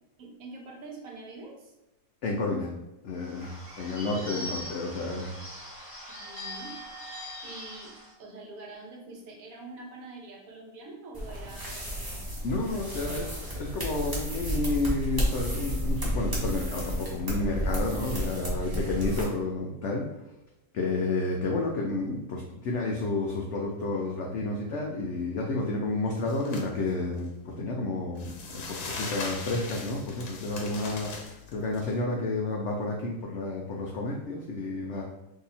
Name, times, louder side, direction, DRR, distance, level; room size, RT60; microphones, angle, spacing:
voice 1, 0.2-1.7 4.2-4.9 6.1-6.8 7.4-12.4 12.7-13.3, right 2 dB, 65° right, 1 dB, 1.0 m, -46 dB
voice 2, 2.2-2.7 3.0-5.3 12.4-20.1 20.7-35.0, left 2 dB, 90° left, -1 dB, 0.6 m, -31 dB
Bird / Bell, 3.2-8.1, equal, 10° left, 1.0 m, -41 dB
sound 1, 11.1-19.2, equal, 20° right, 0.5 m, -31 dB
sound 2, 26.1-26.6 27.1-27.2 28.2-31.8, left 3 dB, 70° left, 1.3 m, -39 dB
2.8 x 2.7 x 4.0 m, 0.97 s
omnidirectional pair, 1.8 m